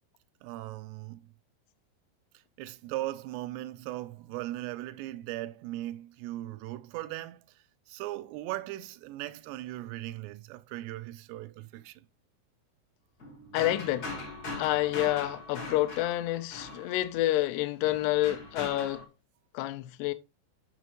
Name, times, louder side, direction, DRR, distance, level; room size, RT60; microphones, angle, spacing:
voice 1, 0.4-1.2 2.6-7.4 7.9-12.0, right 16 dB, 80° right, 2.6 m, -38 dB
sound 1, 13.2-17.3 17.8-19.0, left 2 dB, 65° left, 0.9 m, -41 dB
voice 2, 13.5-14.1 14.6-19.1 19.5-20.1, left 15 dB, 80° left, 2.5 m, -28 dB
6.9 x 6.0 x 2.9 m
omnidirectional pair, 5.2 m